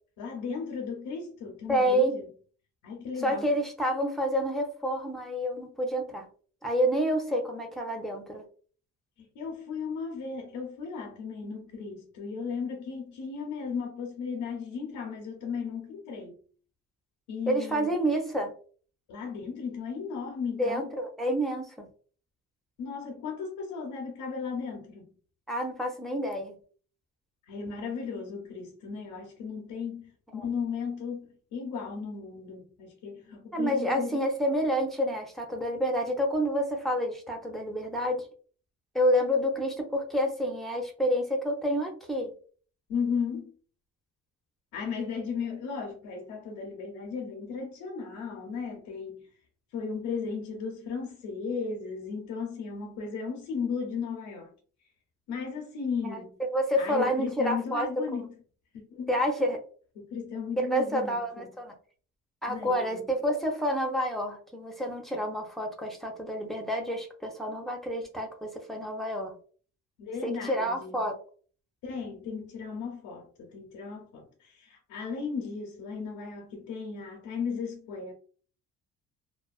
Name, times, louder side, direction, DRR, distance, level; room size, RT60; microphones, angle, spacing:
voice 1, 0.2-2.3 2.8-3.5 9.2-16.4 17.3-17.9 19.1-20.9 22.8-25.1 27.5-34.2 42.9-43.5 44.7-49.3 49.7-54.5 55.3-56.4 56.8-58.3 58.7-59.1 60.0-61.5 62.5-63.1 70.0-71.0 71.8-78.1, left 5 dB, 90° left, 0.7 m, -35 dB
voice 2, 1.7-2.2 3.2-6.3 6.6-8.4 17.5-18.5 20.6-21.9 25.5-26.6 30.4-30.5 33.5-38.3 38.9-42.3 56.1-56.2 56.5-57.9 59.1-59.6 60.6-61.8 62.4-69.3 70.2-71.2, equal, ahead, 0.7 m, -28 dB
2.4 x 2.2 x 2.4 m
cardioid pair, 90°, 30 cm